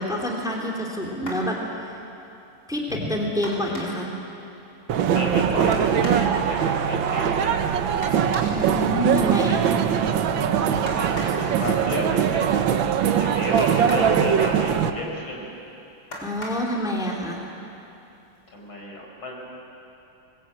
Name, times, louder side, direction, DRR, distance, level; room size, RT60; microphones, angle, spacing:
voice 1, 0.0-1.6 2.7-4.1 8.5-9.8 16.2-17.4, equal, ahead, -1 dB, 2.9 m, -27 dB
sound 1, 1.2-1.5 3.4-4.1 5.7-6.3 8.0-8.6 10.9-11.4 13.6-14.2 16.1-16.7 17.8-17.9 18.4-18.6, left 1 dB, 50° left, 4.9 m, -37 dB
sound 2, 4.9-14.9, right 8 dB, 70° right, 1.7 m, -22 dB
voice 2, 5.1-7.6 10.8-12.6 13.0-15.5 18.5-19.4, left 1 dB, 70° left, -1 dB, 5.5 m, -32 dB
24.0 x 20.5 x 8.8 m, 2.9 s
omnidirectional pair, 2.3 m